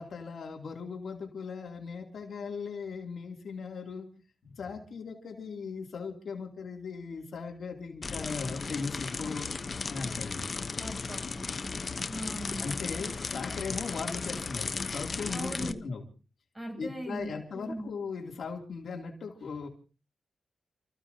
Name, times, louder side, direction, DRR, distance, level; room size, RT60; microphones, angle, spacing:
voice 1, 0.0-4.1 4.4-9.6 9.9-10.4 12.6-16.0 16.8-19.7, left 5 dB, 65° left, 2 dB, 2.7 m, -38 dB
sound 1, 8.0-15.7, left 4 dB, 40° left, 0.8 m, -35 dB
voice 2, 10.8-12.7 15.3-15.8 16.5-17.9, equal, 15° right, 2 dB, 7.2 m, -40 dB
30.0 x 15.0 x 2.8 m, 0.35 s
wide cardioid pair, 120°, 0 cm